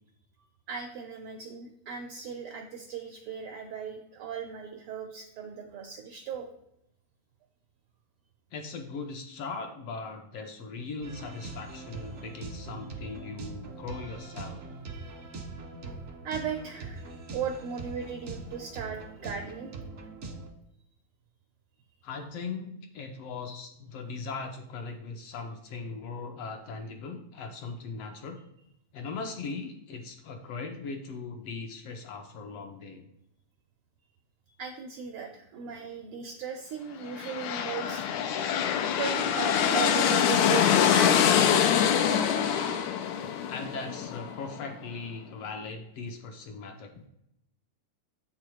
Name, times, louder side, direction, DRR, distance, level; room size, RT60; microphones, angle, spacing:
voice 1, 0.7-6.5 12.1-12.2 13.1-13.2 15.8-16.0 16.2-17.1 17.3-19.7 34.6-38.1 39.0-40.6 40.9-41.7, right 7 dB, 85° right, 4 dB, 1.2 m, -37 dB
voice 2, 8.5-14.6 22.0-28.4 28.9-33.1 43.5-46.9, left 4 dB, 75° left, 4 dB, 1.5 m, -39 dB
sound 1, 11.0-20.5, right 3 dB, 65° right, 0.8 m, -42 dB
sound 2, 37.1-44.8, left 8 dB, 90° left, 2.0 m, -25 dB
7.7 x 4.9 x 4.5 m, 0.78 s
omnidirectional pair, 3.3 m